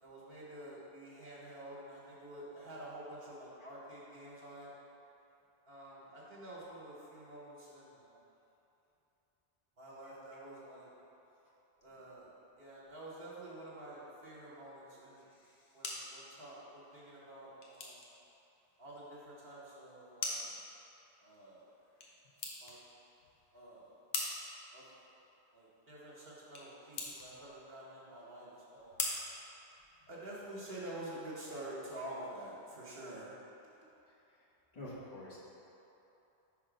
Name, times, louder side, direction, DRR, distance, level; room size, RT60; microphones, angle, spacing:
voice 1, 0.0-4.7 5.7-8.2 9.8-10.9 11.8-15.2 15.7-18.0 18.8-20.5 21.2-21.7 22.6-22.8 23.5-24.0 24.7-24.8 25.5-28.9 30.1-33.4, right 1 dB, 65° right, -6 dB, 1.1 m, -48 dB
voice 2, 15.3-15.7 34.7-35.4, left 1 dB, 40° left, -9 dB, 1.3 m, -48 dB
sound 1, 15.4-30.3, left 3 dB, 70° left, 1.0 m, -46 dB
5.3 x 3.7 x 5.0 m, 2.9 s
omnidirectional pair, 1.1 m